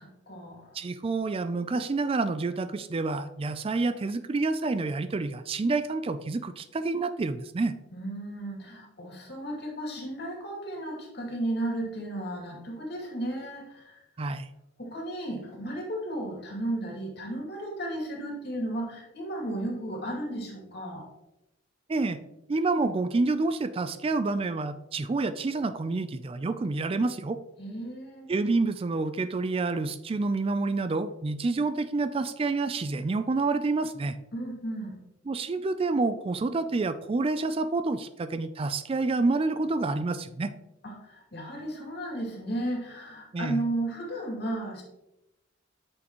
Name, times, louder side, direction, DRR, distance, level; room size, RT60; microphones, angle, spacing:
voice 1, 0.0-0.8 7.9-14.0 14.8-21.0 27.6-28.3 34.3-35.0 40.8-44.8, right 1 dB, 55° left, -1 dB, 2.4 m, -34 dB
voice 2, 0.7-7.7 14.2-14.5 21.9-22.2 22.5-27.4 28.3-34.2 35.3-40.5 43.3-43.6, right 3 dB, 30° right, 11 dB, 0.3 m, -28 dB
9.3 x 6.3 x 3.0 m, 0.91 s
head